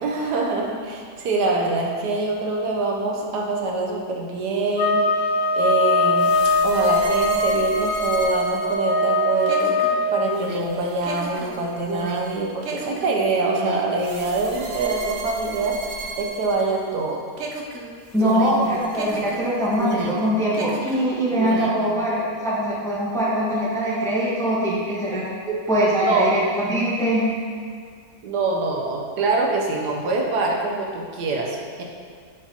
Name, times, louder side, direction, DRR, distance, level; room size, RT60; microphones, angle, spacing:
voice 1, 0.0-5.0 5.5-6.3 6.6-9.7 10.1-15.8 16.2-17.2 18.2-18.3 18.6-18.7 25.5-25.6 26.1-26.3 28.2-31.8, right 3 dB, 75° right, 0 dB, 1.4 m, -24 dB
sound 1, 4.7-10.2, left 1 dB, 70° left, 1.0 m, -21 dB
sound 2, 6.2-17.0 17.4-20.3 20.5-21.9, right 2 dB, 60° right, 0.8 m, -33 dB
voice 2, 18.1-25.3 25.7-26.4 26.7-27.4, equal, ahead, -6 dB, 0.8 m, -22 dB
9.7 x 5.1 x 2.8 m, 2.1 s
omnidirectional pair, 1.8 m